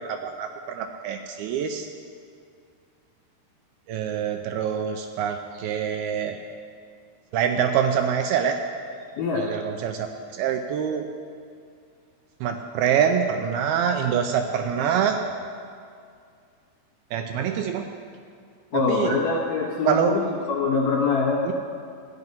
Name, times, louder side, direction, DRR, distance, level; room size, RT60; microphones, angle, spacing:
voice 1, 0.0-1.9 3.9-6.4 7.3-8.6 9.4-10.1 10.3-11.1 12.4-15.2 17.1-17.9 18.7-19.1 19.9-20.2 21.5-21.6, right 8 dB, 85° right, 5 dB, 2.3 m, -25 dB
voice 2, 18.7-21.4, left 4 dB, 65° left, -5 dB, 1.8 m, -24 dB
13.5 x 9.8 x 5.3 m, 2.2 s
omnidirectional pair, 4.8 m